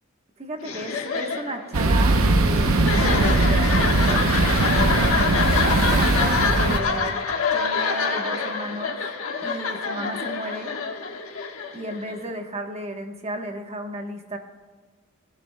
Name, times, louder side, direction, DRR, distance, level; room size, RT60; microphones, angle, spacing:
voice 1, 0.4-7.2 7.5-9.0 9.4-10.8 11.7-14.4, right 1 dB, 30° right, 4 dB, 1.1 m, -34 dB
sound 1, 0.6-12.3, left 5 dB, 90° left, 1.3 m, -26 dB
sound 2, 1.7-6.8, right 2 dB, 80° right, 0.7 m, -20 dB
17.0 x 10.5 x 2.2 m, 1.5 s
head